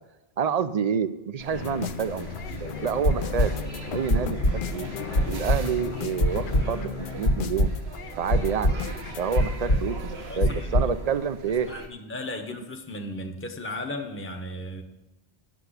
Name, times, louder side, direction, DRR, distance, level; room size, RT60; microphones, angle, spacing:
voice 1, 0.4-2.3 2.6-3.5 3.9-4.4 4.7-4.9 5.3-7.7 8.2-8.7 9.2-11.7, right 7 dB, 50° right, 12 dB, 0.5 m, -28 dB
sound 1, 1.4-11.9, right 2 dB, 80° right, 1.4 m, -41 dB
sound 2, 1.5-9.4, left 8 dB, 60° left, 0.7 m, -36 dB
sound 3, 2.4-2.6 2.9-3.8 4.1-4.7 5.1-5.8 6.2-7.0 7.2-7.9 8.3-9.1 9.4-10.9, equal, 80° left, 1.6 m, -24 dB
voice 2, 10.3-10.9 11.7-14.8, left 1 dB, 15° left, 4 dB, 0.8 m, -36 dB
8.5 x 6.7 x 8.1 m, 0.98 s
omnidirectional pair, 1.1 m